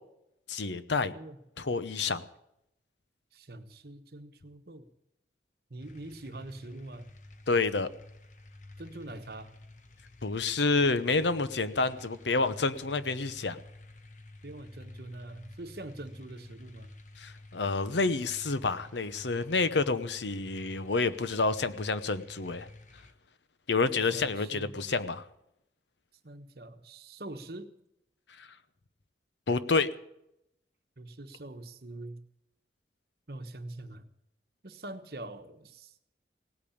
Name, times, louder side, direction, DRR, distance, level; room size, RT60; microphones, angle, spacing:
voice 1, 0.5-1.1 1.6-2.2 7.5-7.9 10.2-13.6 17.2-22.7 23.7-25.2 28.4-28.5 29.5-29.9, left 3 dB, 90° left, 14 dB, 0.9 m, -28 dB
voice 2, 3.3-4.9 5.7-7.1 8.8-9.5 14.4-16.9 24.1-24.8 26.2-27.7 31.0-32.2 33.3-34.1 34.6-36.0, right 2 dB, 60° right, 7 dB, 1.2 m, -44 dB
sound 1, 5.8-23.1, left 2 dB, 45° left, 1.1 m, -51 dB
17.5 x 8.6 x 8.6 m, 0.80 s
head